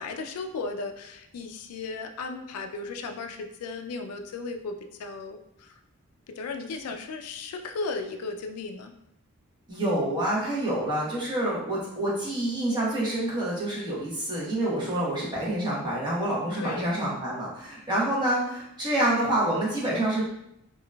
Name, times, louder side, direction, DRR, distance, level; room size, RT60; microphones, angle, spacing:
voice 1, 0.0-5.7 6.4-8.9 16.5-16.9, left 3 dB, 85° left, 5 dB, 0.4 m, -35 dB
voice 2, 9.7-20.2, right 1 dB, 20° right, -7 dB, 1.0 m, -27 dB
3.8 x 2.4 x 2.2 m, 0.78 s
head